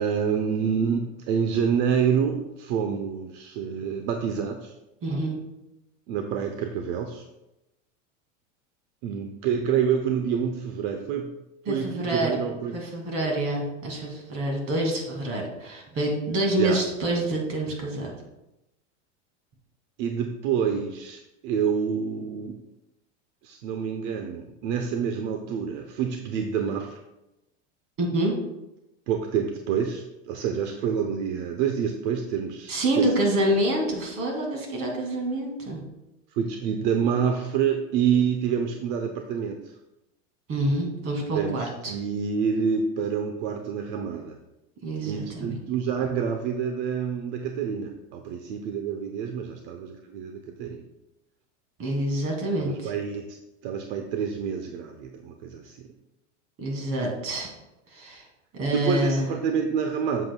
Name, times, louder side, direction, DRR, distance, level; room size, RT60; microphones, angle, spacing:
voice 1, 0.0-4.7 6.1-7.2 9.0-11.3 11.7-12.7 16.5-16.8 20.0-22.6 23.4-27.0 29.1-33.1 36.3-39.7 41.3-44.4 45.1-50.8 52.6-53.4 53.6-55.9 58.7-60.2, right 7 dB, 65° right, 5 dB, 0.8 m, -27 dB
voice 2, 5.0-5.4 11.7-12.4 12.7-18.1 28.0-28.4 32.7-35.8 40.5-41.9 44.8-45.6 51.8-52.9 56.6-57.5 57.9-58.3 58.5-59.3, right 1 dB, 35° right, 0 dB, 2.2 m, -27 dB
7.7 x 7.7 x 2.2 m, 0.93 s
supercardioid pair, 140°, 38 cm